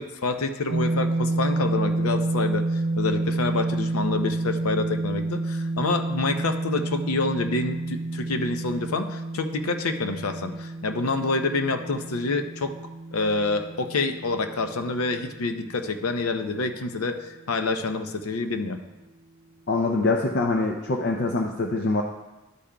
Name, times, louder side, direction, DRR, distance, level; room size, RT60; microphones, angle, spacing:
voice 1, 0.0-12.8 13.1-18.8, left 3 dB, 90° left, 7 dB, 0.7 m, -27 dB
sound 1, 0.7-16.7, right 2 dB, 85° right, 0.7 m, -29 dB
voice 2, 19.7-22.0, left 3 dB, 50° left, 2 dB, 0.5 m, -24 dB
11.5 x 8.5 x 2.3 m, 1.0 s
head